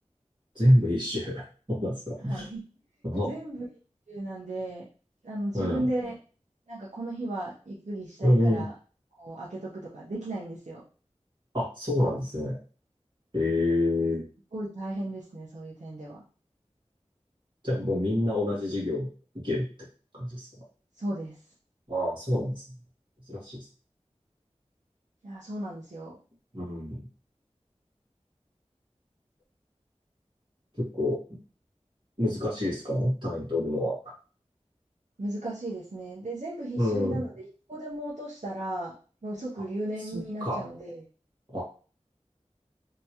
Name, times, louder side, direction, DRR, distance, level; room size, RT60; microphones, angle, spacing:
voice 1, 0.6-2.5 3.0-3.3 5.5-5.9 8.2-8.7 11.5-12.6 13.3-14.2 17.6-19.1 19.4-19.7 20.1-20.5 21.9-22.6 23.3-23.6 26.5-27.0 30.8-31.2 32.2-34.1 36.8-37.2 40.1-40.6 41.5-41.6, left 1 dB, 40° right, -7 dB, 1.9 m, -27 dB
voice 2, 2.2-2.6 3.2-3.7 4.1-4.8 5.2-6.1 6.7-8.7 9.2-10.8 14.5-16.2 21.0-21.4 25.2-26.1 35.2-38.9 39.2-41.0, right 1 dB, 85° right, -7 dB, 0.9 m, -35 dB
3.4 x 3.0 x 2.9 m, 0.38 s
wide cardioid pair, 45°, 12 cm